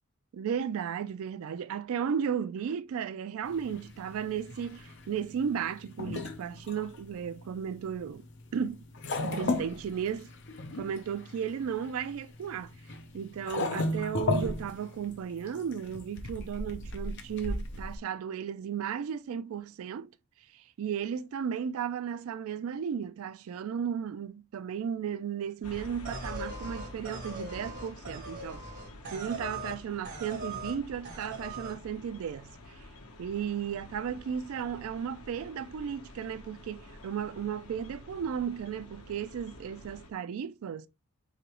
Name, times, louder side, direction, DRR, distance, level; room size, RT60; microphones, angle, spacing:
voice 1, 0.3-8.2 8.5-8.8 9.2-10.3 10.7-12.7 13.1-20.1 20.5-28.6 29.1-32.9 33.2-40.9, right 7 dB, 70° right, 0.3 m, -35 dB
sound 1, 3.5-18.0, left 2 dB, 55° left, 0.7 m, -36 dB
sound 2, 25.6-40.1, left 1 dB, 85° left, 0.9 m, -48 dB
sound 3, 26.0-29.8 30.0-30.8 31.0-31.8, right 2 dB, 40° right, 1.5 m, -40 dB
5.0 x 2.9 x 3.0 m
head